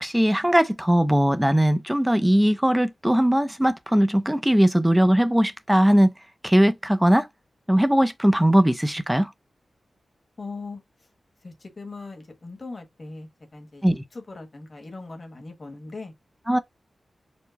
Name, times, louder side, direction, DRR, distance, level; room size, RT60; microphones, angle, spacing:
voice 1, 0.0-6.1 6.4-7.3 7.7-9.3 13.8-14.0 16.5-16.6, equal, 5° right, 0.4 m, -19 dB
voice 2, 10.4-10.8 11.4-13.8 14.1-16.1, left 3 dB, 40° left, 1.2 m, -39 dB
4.5 x 2.1 x 3.9 m
wide cardioid pair, 140°, 0 cm